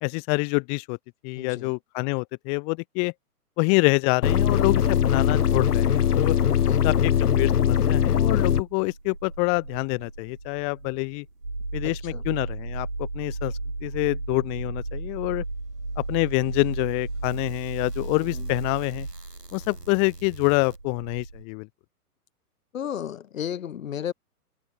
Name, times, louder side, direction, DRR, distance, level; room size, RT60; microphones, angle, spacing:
voice 1, 0.0-1.0 1.2-3.1 3.6-6.4 6.8-6.9 7.2-11.3 11.7-13.5 13.8-15.4 16.0-19.1 19.5-21.7, left 39 dB, 15° left, 0.6 m, -26 dB
voice 2, 1.4-1.7 6.4-6.9 11.8-12.2 18.3-18.5 22.7-24.1, left 9 dB, 55° left, 3.7 m, -34 dB
sound 1, 4.2-8.6, left 8 dB, 70° left, 0.9 m, -21 dB
sound 2, 8.4-21.5, right 2 dB, 85° right, 7.9 m, -35 dB
figure-of-eight pair, 120°, 47 cm